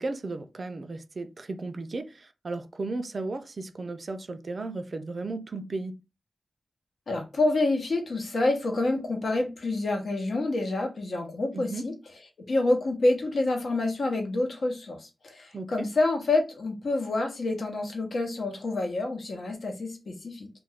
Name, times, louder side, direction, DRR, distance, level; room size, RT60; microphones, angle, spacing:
voice 1, 0.0-6.0 11.5-11.9 15.5-15.9, right 3 dB, 55° right, 0.4 m, -35 dB
voice 2, 7.1-11.9 12.5-20.5, left 2 dB, 70° left, 0.8 m, -27 dB
2.4 x 2.2 x 3.5 m
wide cardioid pair, 70°, 0 cm